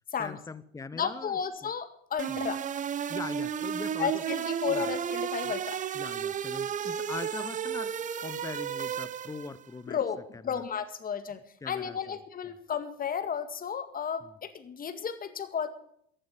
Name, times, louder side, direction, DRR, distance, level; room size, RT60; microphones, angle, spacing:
voice 1, 0.2-1.7 2.3-2.4 3.1-4.2 4.7-4.9 5.5-5.6 5.9-10.0 10.3-10.6 11.6-12.2 14.2-14.3, left 4 dB, 10° left, 18 dB, 0.7 m, -42 dB
voice 2, 0.9-2.6 4.0-5.8 9.9-15.7, left 7 dB, 25° left, 10 dB, 2.0 m, -33 dB
sound 1, 2.2-9.6, right 8 dB, 25° right, 0.7 m, -33 dB
15.0 x 9.0 x 8.9 m, 0.68 s
hypercardioid pair, 90°, 32 cm